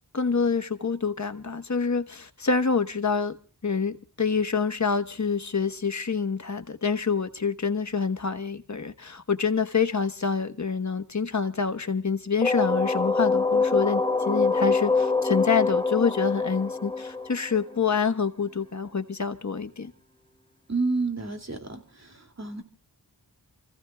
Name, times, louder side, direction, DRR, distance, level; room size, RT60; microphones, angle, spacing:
voice 1, 0.1-3.4 3.6-19.9, left 5 dB, 45° left, 9 dB, 1.3 m, -27 dB
sound 1, 12.4-18.1, left 4 dB, 10° left, 1.2 m, -25 dB
voice 2, 20.7-22.6, right 3 dB, 40° right, 5 dB, 2.6 m, -30 dB
29.5 x 15.5 x 2.3 m, 0.37 s
wide cardioid pair, 50°, 41 cm